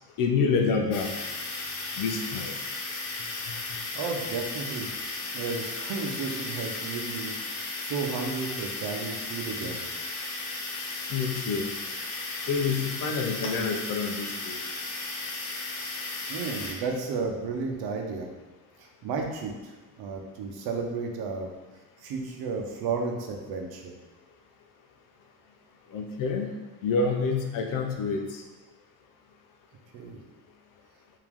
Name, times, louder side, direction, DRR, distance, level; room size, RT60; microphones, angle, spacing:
voice 1, 0.2-1.1 2.0-2.5 11.1-11.7 12.5-14.6 25.9-26.5 26.8-28.4, left 4 dB, 55° left, 3 dB, 0.7 m, -27 dB
sound 1, 0.9-16.7, left 3 dB, 80° left, 1.0 m, -35 dB
voice 2, 3.9-4.9 5.3-9.8 15.9-18.3 18.8-19.7 20.0-21.5 22.0-23.9 29.9-30.2, right 4 dB, 70° right, 2 dB, 0.8 m, -33 dB
5.0 x 2.8 x 3.6 m, 1.2 s
cardioid pair, 150°, 39 cm